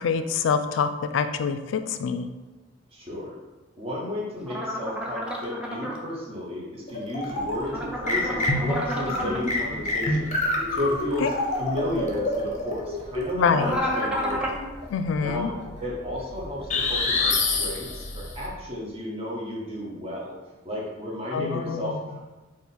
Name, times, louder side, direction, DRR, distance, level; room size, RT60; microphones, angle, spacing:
voice 1, 0.0-2.3 11.2-11.3 13.3-13.7 14.9-15.5 21.3-22.0, left 6 dB, 80° left, 9 dB, 0.3 m, -25 dB
voice 2, 2.9-3.4 3.8-11.3 11.6-14.5 15.2-15.5 15.8-20.4 20.6-22.3, left 1 dB, 30° right, -3 dB, 0.9 m, -33 dB
sound 1, 4.5-6.0 7.6-9.4 13.5-14.6, equal, 5° right, 0.4 m, -30 dB
sound 2, 6.9-7.7 8.1-14.7 16.7-18.3, left 2 dB, 40° left, 0.6 m, -27 dB
Livestock farm animals working animals, 7.3-18.7, equal, 60° right, 1.3 m, -43 dB
3.7 x 2.5 x 4.1 m, 1.1 s
head